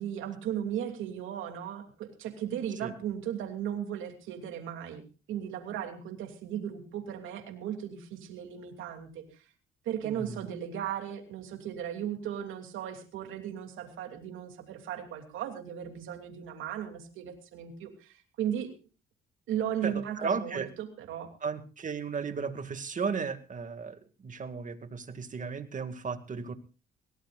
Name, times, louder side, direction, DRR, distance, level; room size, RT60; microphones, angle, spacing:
voice 1, 0.0-5.0 5.3-9.2 9.8-18.7 19.5-21.3, right 9 dB, 85° right, 4 dB, 2.9 m, -36 dB
voice 2, 10.0-10.4 19.8-20.7 21.4-26.5, right 5 dB, 40° right, 8 dB, 2.2 m, -35 dB
22.0 x 18.5 x 2.5 m, 0.33 s
cardioid pair, 90°, 20 cm